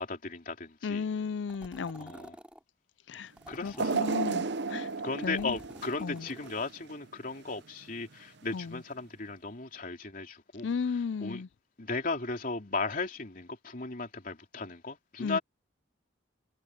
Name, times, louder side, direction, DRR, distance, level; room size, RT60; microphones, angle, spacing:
voice 1, 0.0-1.1 2.0-2.4 3.1-3.2 3.5-4.1 5.0-10.7 11.2-11.4 11.8-15.4, left 3 dB, 50° left, 3.3 m, -36 dB
voice 2, 0.8-2.1 3.1-3.3 3.6-4.9 5.2-5.6 6.0-6.3 8.5-8.8 10.6-11.5 15.2-15.4, left 5 dB, 75° left, 0.4 m, -34 dB
sound 1, 1.5-2.6 3.4-4.5 5.1-6.6, equal, 5° right, 3.3 m, -50 dB
sound 2, 3.8-6.9 7.4-7.5 8.5-8.6, right 4 dB, 65° right, 0.8 m, -33 dB
head